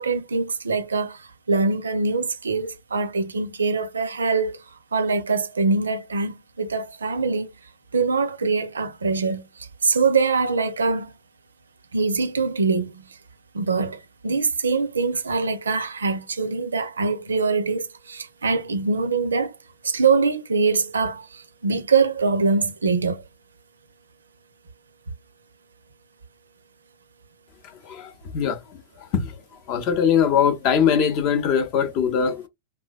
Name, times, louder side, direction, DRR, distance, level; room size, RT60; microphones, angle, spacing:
voice 1, 0.0-4.6 4.9-7.5 7.9-11.1 11.9-13.1 13.5-19.5 19.8-23.2, right 4 dB, 75° right, 0.4 m, -23 dB
voice 2, 27.6-28.8 29.1-29.4 29.7-32.5, left 7 dB, 40° left, 0.5 m, -22 dB
3.1 x 2.2 x 2.2 m
figure-of-eight pair, 90°, 0 cm